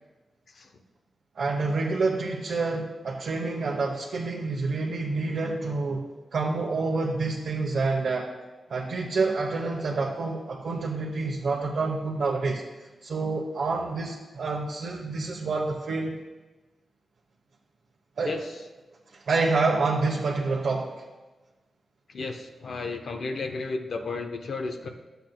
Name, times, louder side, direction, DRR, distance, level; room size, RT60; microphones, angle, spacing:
voice 1, 1.4-6.0 6.3-8.3 8.7-12.6 13.0-16.1 18.2-18.4 19.1-20.9, right 3 dB, 75° right, -3 dB, 0.9 m, -28 dB
voice 2, 22.1-24.9, left 3 dB, 65° left, 5 dB, 0.8 m, -33 dB
12.0 x 8.0 x 2.2 m, 1.2 s
cardioid pair, 80°, 0 cm